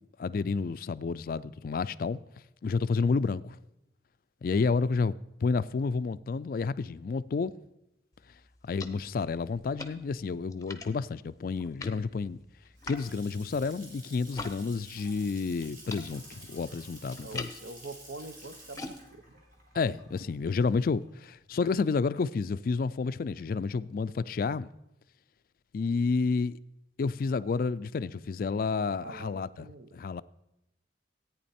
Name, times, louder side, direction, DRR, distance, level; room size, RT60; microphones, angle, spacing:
voice 1, 0.2-2.2 2.6-3.6 4.4-5.1 5.4-7.5 8.6-12.4 12.8-17.5 19.7-24.7 25.7-26.6 27.0-29.7 29.9-30.2, left 4 dB, 55° left, 0.3 m, -30 dB
sound 1, 8.1-14.6 14.9-20.7, left 3 dB, 20° left, 0.7 m, -46 dB
Water tap faucet / Sink (filling or washing) / Splash splatter, 12.5-21.4, right 1 dB, 50° right, 3.0 m, -51 dB
voice 2, 17.2-19.4 29.0-30.0, right 2 dB, 70° right, 0.7 m, -45 dB
14.0 x 9.1 x 4.3 m
head